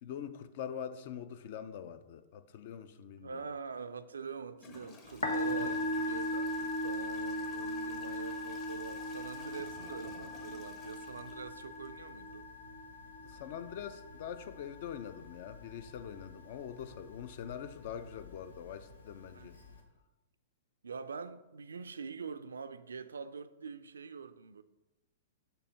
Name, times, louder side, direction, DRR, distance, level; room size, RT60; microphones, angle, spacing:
voice 1, 0.0-3.4 5.5-5.8 13.2-19.6, left 8 dB, 50° left, 0.4 m, -44 dB
voice 2, 3.2-12.5 19.3-19.5 20.8-24.6, right 5 dB, 70° right, 0.3 m, -44 dB
Toilet flush / Trickle dribble, 3.7-3.8 4.5-12.3, left 3 dB, 35° left, 1.0 m, -55 dB
Musical instrument, 5.1-19.8, left 1 dB, 80° left, 1.0 m, -39 dB
6.9 x 2.7 x 5.5 m
figure-of-eight pair, 105°, 0 cm